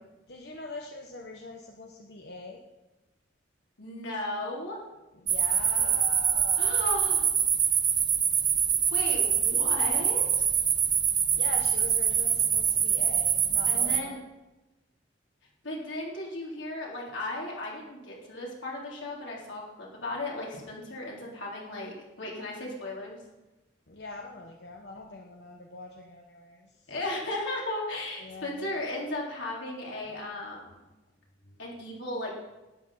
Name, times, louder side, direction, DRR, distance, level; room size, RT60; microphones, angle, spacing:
voice 1, 0.3-2.6 5.2-6.8 11.3-14.2 23.9-26.7 28.2-28.7 31.5-31.6, left 3 dB, 60° left, 1 dB, 1.0 m, -42 dB
voice 2, 3.8-4.8 6.6-7.3 8.9-10.5 13.7-14.2 15.6-23.2 26.9-30.8 31.6-32.3, left 2 dB, 85° left, -3 dB, 3.6 m, -36 dB
sound 1, 5.3-14.0, right 8 dB, 25° right, 0.6 m, -25 dB
12.0 x 9.9 x 5.6 m, 1.1 s
head